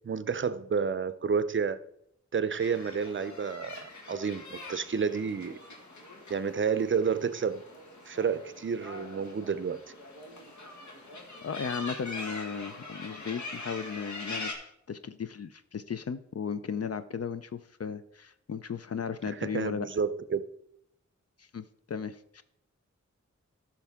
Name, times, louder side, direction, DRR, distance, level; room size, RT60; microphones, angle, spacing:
voice 1, 0.0-1.8 2.3-5.6 6.3-7.6 8.1-9.8 19.3-20.4, right 6 dB, 40° right, 0.5 m, -30 dB
sound 1, 2.6-14.5, left 2 dB, 75° left, 1.7 m, -43 dB
voice 2, 11.4-19.9 21.4-22.4, left 6 dB, 55° left, 0.5 m, -36 dB
13.5 x 5.9 x 3.6 m
wide cardioid pair, 95°, 29 cm